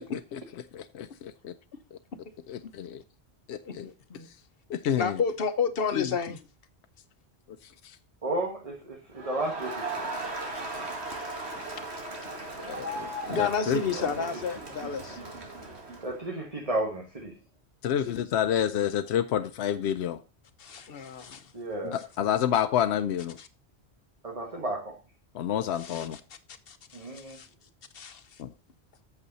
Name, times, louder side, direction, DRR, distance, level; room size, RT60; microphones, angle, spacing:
voice 1, 0.7-1.1 2.5-3.0 3.5-3.8 4.7-5.1 5.9-6.1 7.8-8.0 12.7-13.8 17.8-20.2 21.8-23.4 25.3-26.2 28.4-28.5, left 9 dB, 80° left, 0.9 m, -28 dB
voice 2, 3.6-4.3 5.0-6.4 11.4-11.8 13.3-15.2 18.0-18.6 20.6-21.5 21.9-22.0 23.4-23.5 25.7-27.5 27.9-28.4, left 5 dB, 65° left, 1.1 m, -32 dB
voice 3, 8.2-10.1 14.0-14.1 16.0-17.4 21.5-22.0 24.2-25.0 26.9-27.4, right 1 dB, 35° right, 1.5 m, -33 dB
Crowd, 9.2-16.2, right 2 dB, 75° right, 2.2 m, -37 dB
8.3 x 7.1 x 4.0 m
omnidirectional pair, 1.1 m